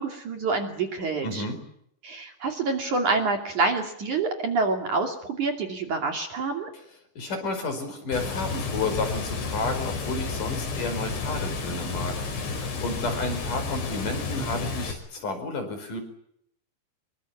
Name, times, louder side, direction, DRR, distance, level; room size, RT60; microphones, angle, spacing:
voice 1, 0.0-1.4 2.0-6.7, right 3 dB, 45° right, 4 dB, 3.7 m, -27 dB
voice 2, 1.2-1.6 7.2-16.0, left 3 dB, 45° left, 7 dB, 6.2 m, -31 dB
Water, 8.1-14.9, left 4 dB, 75° left, 7.2 m, -31 dB
26.5 x 24.0 x 8.7 m, 0.71 s
omnidirectional pair, 5.3 m